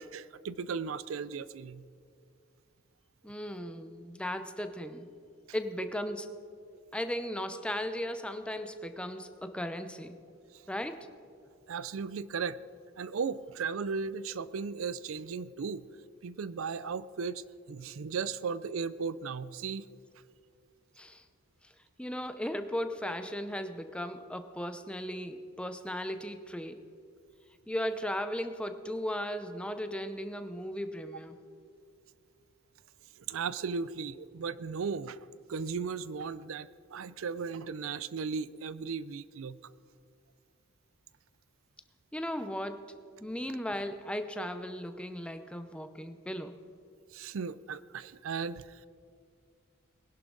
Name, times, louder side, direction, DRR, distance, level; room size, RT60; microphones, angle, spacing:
voice 1, 0.0-1.8 10.5-10.6 11.7-12.6 13.0-15.8 16.2-19.9 33.2-35.2 35.5-39.6 43.4-43.5 47.1-48.9, right 5 dB, 70° right, 17 dB, 0.4 m, -36 dB
voice 2, 3.2-5.1 5.5-6.3 6.9-10.2 10.7-11.1 21.0-21.2 22.0-26.8 27.7-31.4 42.1-42.9 43.2-46.6, equal, 5° left, 9 dB, 0.6 m, -36 dB
20.0 x 11.0 x 3.9 m, 2.3 s
head